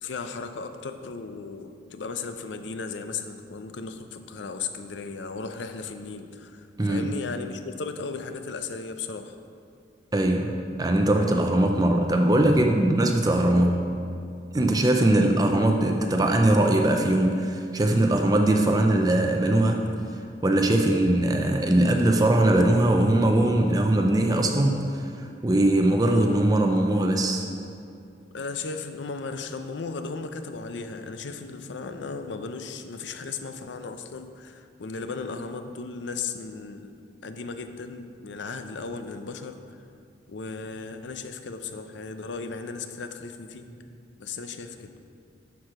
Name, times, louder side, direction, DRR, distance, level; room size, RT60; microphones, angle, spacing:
voice 1, 0.0-9.4 28.3-36.9 37.2-39.8 40.3-43.7 44.2-44.9, left 4 dB, 75° left, 8 dB, 0.5 m, -36 dB
voice 2, 10.1-13.8 14.5-19.8 20.4-25.1 25.4-27.4, right 1 dB, 20° right, 3 dB, 0.4 m, -21 dB
12.5 x 4.6 x 4.8 m, 2.5 s
head